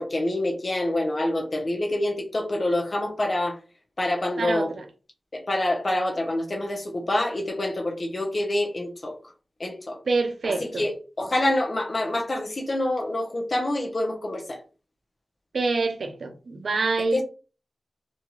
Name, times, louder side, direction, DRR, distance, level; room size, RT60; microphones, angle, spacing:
voice 1, 0.0-3.6 4.0-4.7 5.3-9.2 9.6-10.0 10.4-10.9 11.2-14.6 17.1-17.2, left 1 dB, 45° left, 0.6 m, -26 dB
voice 2, 4.4-4.8 10.1-10.9 15.5-17.2, right 3 dB, 75° right, 0.5 m, -26 dB
2.7 x 2.3 x 3.0 m
cardioid pair, 50°, 0 cm